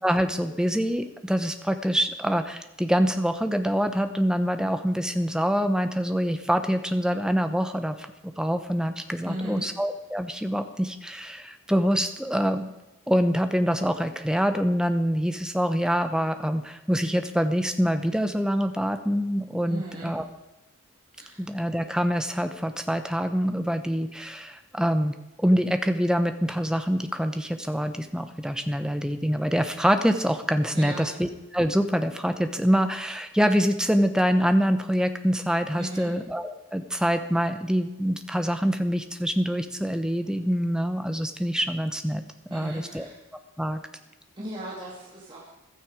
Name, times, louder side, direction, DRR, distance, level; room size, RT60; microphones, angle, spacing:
voice 1, 0.0-12.7 13.1-20.2 21.4-25.1 25.4-42.2 42.5-43.0 43.6-43.8, equal, 5° right, 8 dB, 0.9 m, -25 dB
voice 2, 9.2-9.7 19.7-20.1 21.1-21.4 30.7-31.1 35.8-36.1 42.5-43.2 44.4-45.5, right 1 dB, 25° right, -5 dB, 3.0 m, -37 dB
15.0 x 13.0 x 5.0 m, 1.0 s
head